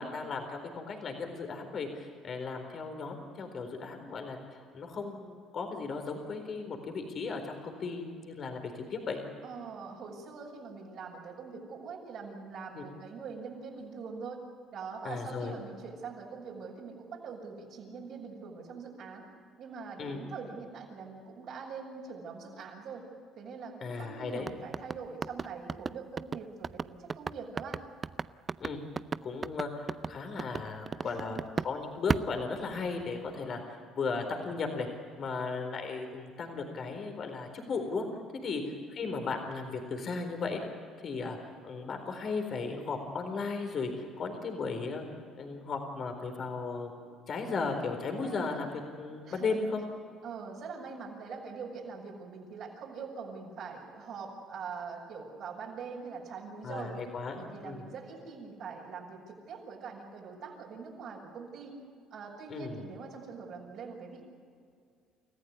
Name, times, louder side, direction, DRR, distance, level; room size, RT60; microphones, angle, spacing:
voice 1, 0.0-9.2 12.7-12.8 15.0-15.5 20.0-20.2 23.8-24.5 28.6-28.8 29.2-31.4 31.6-34.9 35.2-38.1 38.4-38.6 38.9-40.6 41.0-41.4 41.6-45.1 45.4-46.9 47.3-48.7 49.0-49.8 56.6-57.8 62.5-62.8, left 4 dB, 50° left, 4 dB, 4.2 m, -36 dB
voice 2, 9.4-14.4 14.7-19.2 19.6-23.0 23.4-27.8 31.0-31.4 38.4-38.5 48.2-48.7 49.2-49.5 50.2-57.0 57.3-61.8 62.1-64.2, right 5 dB, 65° right, -3 dB, 6.4 m, -43 dB
sound 1, 24.4-31.8 32.1-33.2, right 5 dB, 35° right, 0.6 m, -35 dB
29.0 x 15.0 x 9.7 m, 2.2 s
supercardioid pair, 70°, 0 cm